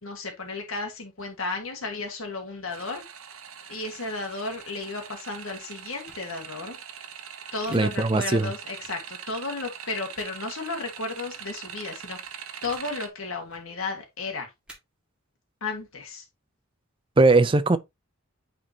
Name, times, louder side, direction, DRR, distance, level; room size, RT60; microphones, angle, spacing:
voice 1, 0.0-3.0 3.7-6.8 7.5-12.2 12.6-14.5 15.6-16.2, left 3 dB, 70° left, 1.8 m, -33 dB
sound 1, 2.7-13.1, right 8 dB, 75° right, 1.0 m, -42 dB
sound 2, 6.0-6.2 7.6-7.8 8.8-8.9 10.1-10.3 11.3-11.5 12.6-12.8 13.4-13.6 14.7-14.8, right 1 dB, 5° right, 1.9 m, -49 dB
voice 2, 7.7-8.5 17.2-17.8, right 3 dB, 25° right, 0.4 m, -19 dB
9.1 x 4.2 x 2.8 m
head